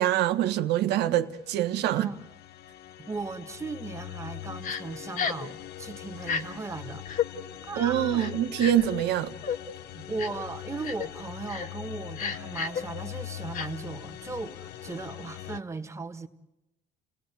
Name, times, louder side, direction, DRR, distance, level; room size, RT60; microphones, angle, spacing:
voice 1, 0.0-2.1 7.8-9.3, right 11 dB, 85° right, 1.4 m, -25 dB
sound 1, 1.2-15.6, left 13 dB, 70° left, 0.9 m, -42 dB
voice 2, 1.8-2.3 3.0-7.0 7.6-8.3 9.9-16.3, right 3 dB, 15° right, 1.9 m, -37 dB
Crying sobbing, 4.6-4.8 5.2-5.5 6.2-6.4 7.1-7.3 8.2-8.9 9.4-9.6 10.2-10.4 10.8-11.1 11.5-11.7 12.2-12.8 13.5-13.7, left 7 dB, 55° left, 1.8 m, -31 dB
29.5 x 18.0 x 9.6 m
cardioid pair, 110°, 17 cm